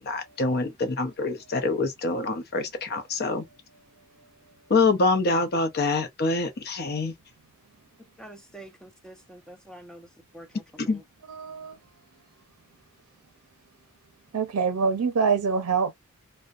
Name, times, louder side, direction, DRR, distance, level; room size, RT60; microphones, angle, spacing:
voice 1, 0.0-3.4 4.7-7.1 10.9-11.0, left 3 dB, 45° left, 0.6 m, -25 dB
voice 2, 8.2-10.1 10.3-11.0, right 1 dB, 5° left, 0.4 m, -46 dB
voice 3, 11.3-11.8 14.3-15.9, right 5 dB, 80° right, 0.5 m, -25 dB
2.5 x 2.1 x 2.3 m
head